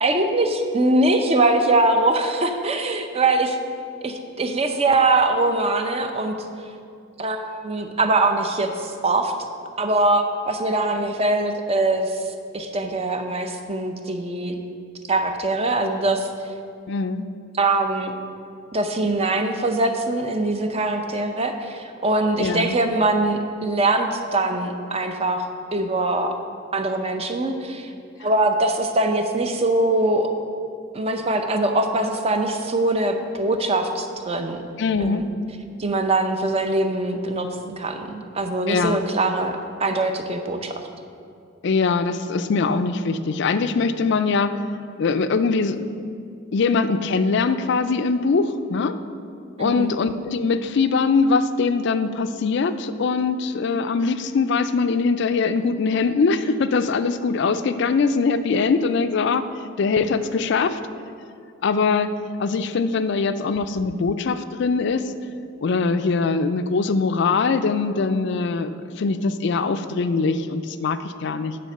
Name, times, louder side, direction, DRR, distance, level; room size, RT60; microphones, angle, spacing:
voice 1, 0.0-3.6 4.0-6.3 7.2-9.3 9.8-14.6 15.1-16.3 17.5-18.1 18.7-26.4 26.7-27.9 28.2-30.3 30.9-34.6 35.0-35.3 35.8-40.7 49.6-49.9, right 2 dB, 30° right, 6 dB, 0.6 m, -22 dB
voice 2, 16.9-17.3 22.4-22.7 34.8-35.3 38.7-39.0 41.6-44.6 45.0-45.9 46.5-48.9 49.6-59.4 59.8-60.8 61.6-62.1 62.4-65.0 65.6-71.6, left 4 dB, 55° left, 11 dB, 0.4 m, -22 dB
9.4 x 4.2 x 6.5 m, 2.4 s
head